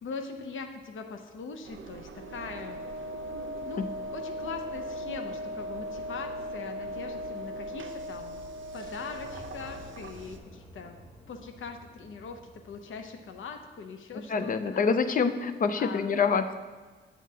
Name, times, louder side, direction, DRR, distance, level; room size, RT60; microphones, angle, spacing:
voice 1, 0.0-2.8 3.7-3.8 4.1-8.4 8.7-11.0 11.3-14.9 15.8-16.0, left 5 dB, 85° left, 5 dB, 0.6 m, -41 dB
Engine, 1.6-10.4, right 6 dB, 75° right, 0.5 m, -46 dB
Wind instrument woodwind instrument, 2.1-9.9, left 1 dB, 70° left, 1.8 m, -39 dB
sound 1, 8.7-14.2, equal, 20° left, 1.2 m, -53 dB
voice 2, 14.3-16.5, left 5 dB, 45° left, 10 dB, 0.4 m, -26 dB
8.3 x 7.4 x 2.8 m, 1.4 s
wide cardioid pair, 160°, 20 cm